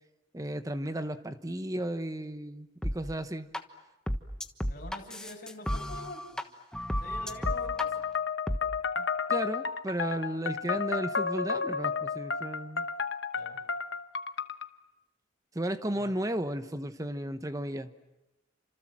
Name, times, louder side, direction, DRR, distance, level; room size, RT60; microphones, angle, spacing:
voice 1, 0.3-3.5 9.0-12.8 15.5-17.9, right 1 dB, 20° right, 10 dB, 1.1 m, -34 dB
sound 1, 2.8-3.0 3.5-3.6 4.1-6.4 6.7-7.9 8.5-8.6, equal, 5° left, 1.2 m, -32 dB
voice 2, 4.7-6.4 7.0-7.9 13.3-13.6 15.9-16.2, left 2 dB, 50° left, 1 dB, 6.5 m, -45 dB
sound 2, 7.5-14.7, left 5 dB, 65° left, 1.1 m, -32 dB
29.5 x 27.0 x 7.5 m, 1.0 s
head